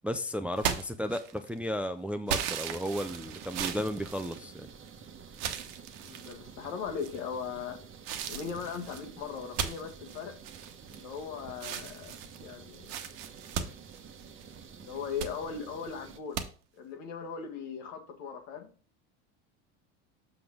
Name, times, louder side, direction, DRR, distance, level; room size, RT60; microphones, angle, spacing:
voice 1, 0.0-4.7, equal, 5° right, 0.4 m, -34 dB
sound 1, 0.6-1.6 2.3-4.9 5.3-6.4 7.0-7.5 8.0-11.2 11.5-14.5 14.9-15.4 16.3-16.5, right 8 dB, 75° right, 1.1 m, -37 dB
sound 2, 2.7-16.2, right 6 dB, 35° right, 1.0 m, -50 dB
voice 2, 6.0-7.8 8.3-10.3 10.9-13.0 14.8-16.5 16.8-18.7, left 6 dB, 75° left, 1.7 m, -39 dB
6.7 x 5.9 x 3.6 m
supercardioid pair, 95°, 36 cm